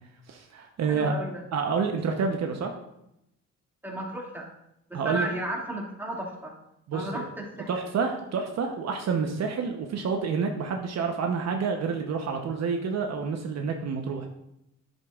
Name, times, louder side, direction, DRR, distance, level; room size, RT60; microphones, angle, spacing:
voice 1, 0.3-1.1 1.5-2.7 4.9-5.3 6.9-7.2 7.7-14.3, right 5 dB, 60° right, 3 dB, 0.9 m, -28 dB
voice 2, 0.9-1.4 3.8-4.5 4.9-6.5 6.9-7.7, right 1 dB, 5° right, -3 dB, 2.3 m, -34 dB
10.5 x 7.9 x 2.4 m, 0.83 s
cardioid pair, 90°, 30 cm